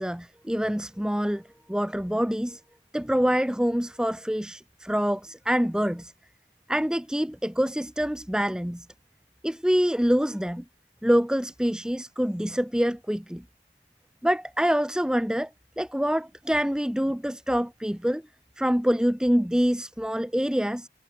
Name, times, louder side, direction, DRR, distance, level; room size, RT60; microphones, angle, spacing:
voice 1, 0.0-1.4 1.7-2.6 2.9-6.1 6.7-8.9 9.4-10.6 11.0-13.4 14.2-15.5 15.8-18.2 18.6-20.9, equal, 5° right, 0.7 m, -25 dB
head